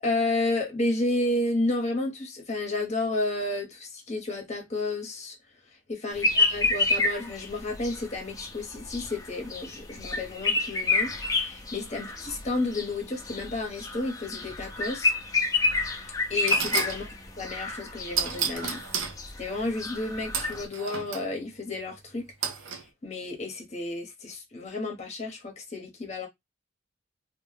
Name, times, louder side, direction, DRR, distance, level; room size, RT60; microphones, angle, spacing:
voice 1, 0.0-5.4 5.7-15.1 16.3-17.1 17.4-22.3 22.7-26.3, left 2 dB, 35° left, 0.8 m, -31 dB
sound 1, 6.2-20.7, left 3 dB, 15° left, 0.3 m, -29 dB
sound 2, 15.8-15.9 16.5-17.0 18.2-19.2 20.3-21.3 22.4-22.8, right 6 dB, 70° right, 0.5 m, -31 dB
2.2 x 2.1 x 3.1 m
head